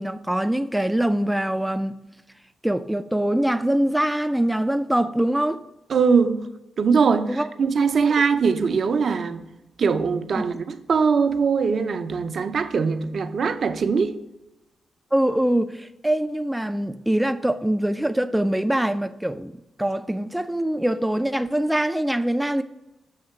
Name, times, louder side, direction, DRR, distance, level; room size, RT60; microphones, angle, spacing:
voice 1, 0.0-2.0 2.6-5.6 7.3-7.5 10.4-10.5 15.1-22.6, right 1 dB, 5° right, 0.4 m, -23 dB
voice 2, 5.9-6.5 6.8-9.5 9.8-14.2, right 5 dB, 60° right, 0.5 m, -21 dB
7.3 x 2.9 x 5.6 m
supercardioid pair, 45°, 0 cm